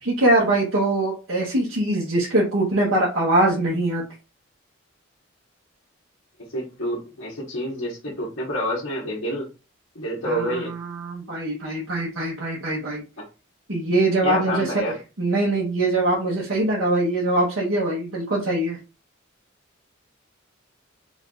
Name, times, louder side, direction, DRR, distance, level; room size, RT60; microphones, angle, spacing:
voice 1, 0.0-4.0 10.2-13.0 13.7-14.8 15.2-18.8, right 1 dB, 80° right, -5 dB, 1.4 m, -22 dB
voice 2, 6.5-9.5 9.9-10.7 13.2-13.3 14.2-15.0, equal, 65° left, -7 dB, 1.4 m, -28 dB
3.8 x 2.6 x 3.8 m, 0.30 s
head